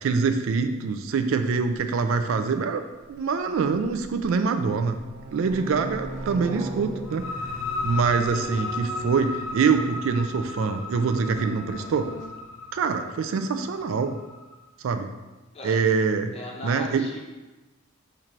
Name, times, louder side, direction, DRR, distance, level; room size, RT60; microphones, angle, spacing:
voice 1, 0.0-2.8 3.1-5.0 5.3-7.3 7.8-12.1 12.7-14.2 14.8-15.1 15.6-16.3 16.6-17.1, right 5 dB, 70° right, 7 dB, 0.3 m, -24 dB
sound 1, 1.7-1.8 3.5-4.3 4.6-10.1 10.9-12.3, right 2 dB, 35° right, 0.8 m, -38 dB
sound 2, 7.0-14.5, left 2 dB, 75° left, 0.5 m, -35 dB
voice 2, 8.3-8.7 15.5-15.8 16.3-17.2, left 1 dB, 30° left, -1 dB, 0.7 m, -38 dB
4.3 x 2.5 x 4.5 m, 1.1 s
head